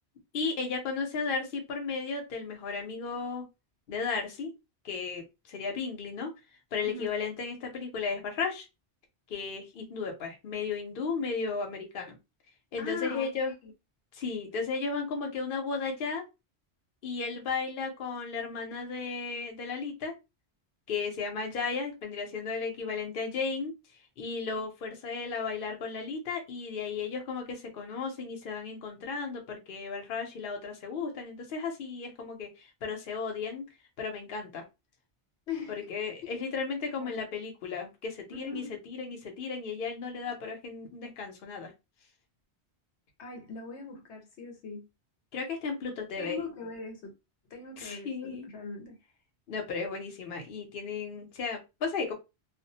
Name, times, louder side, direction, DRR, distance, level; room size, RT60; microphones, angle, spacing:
voice 1, 0.3-3.5 3.9-4.5 4.8-6.3 6.7-8.7 9.3-12.2 12.7-13.5 14.1-16.2 17.0-20.1 20.9-23.7 24.2-33.6 34.0-34.6 35.7-41.7 45.3-46.4 47.8-48.5 49.5-52.1, left 5 dB, 55° left, 0.8 m, -34 dB
voice 2, 12.8-13.7 35.5-35.9 37.0-37.2 38.3-38.7 43.2-44.9 46.2-47.1 47.5-49.0, left 5 dB, 75° left, 1.0 m, -40 dB
2.3 x 2.1 x 2.7 m
omnidirectional pair, 1.2 m